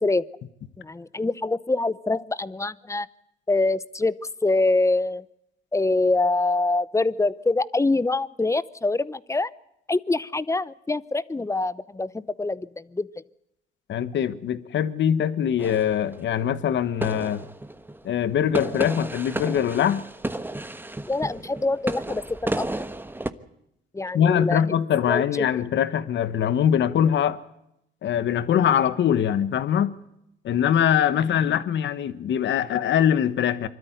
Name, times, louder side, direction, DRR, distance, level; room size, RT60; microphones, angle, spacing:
voice 1, 0.8-3.1 3.5-4.1 4.4-5.2 5.7-9.5 9.9-13.2 21.1-22.7 23.9-24.8 25.1-25.6, left 2 dB, 15° left, 0.8 m, -25 dB
voice 2, 13.9-17.4 18.0-20.0 24.1-27.4 28.0-29.9 30.4-33.7, left 9 dB, 65° left, 1.2 m, -22 dB
sound 1, 15.6-16.4 17.0-18.1 18.5-23.3, right 1 dB, 10° right, 1.2 m, -32 dB
24.5 x 13.0 x 9.3 m
cardioid pair, 90°, 20 cm